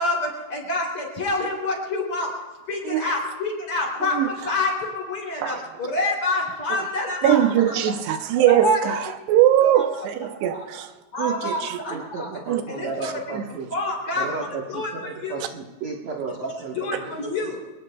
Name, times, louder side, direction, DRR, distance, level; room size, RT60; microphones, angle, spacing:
voice 1, 0.0-2.3 2.7-7.4 7.7-8.0 8.4-8.8 9.6-10.1 10.5-10.6 11.1-12.3 12.7-13.2 13.7-15.4 16.7-17.6, left 2 dB, 35° left, 3.9 m, -27 dB
voice 2, 7.2-9.0 9.3-10.9 11.2-12.0 12.5-12.6 13.0-13.4, right 11 dB, 85° right, 3.0 m, -21 dB
voice 3, 11.9-13.7 14.2-17.3, right 4 dB, 60° right, 2.0 m, -33 dB
26.0 x 20.5 x 2.3 m
omnidirectional pair, 4.7 m